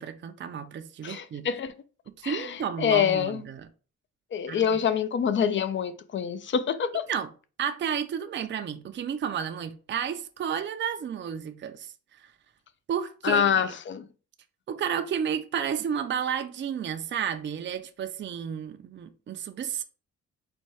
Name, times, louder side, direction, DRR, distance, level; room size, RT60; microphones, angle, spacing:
voice 1, 0.0-1.5 2.2-3.7 4.5-4.7 7.1-7.3 7.6-12.3 12.9-13.7 14.7-19.8, right 8 dB, 40° right, 0.5 m, -32 dB
voice 2, 1.0-1.7 2.2-3.4 4.3-7.1 13.2-14.0, left 8 dB, 40° left, 0.5 m, -26 dB
4.2 x 2.3 x 4.6 m
cardioid pair, 90°, 30 cm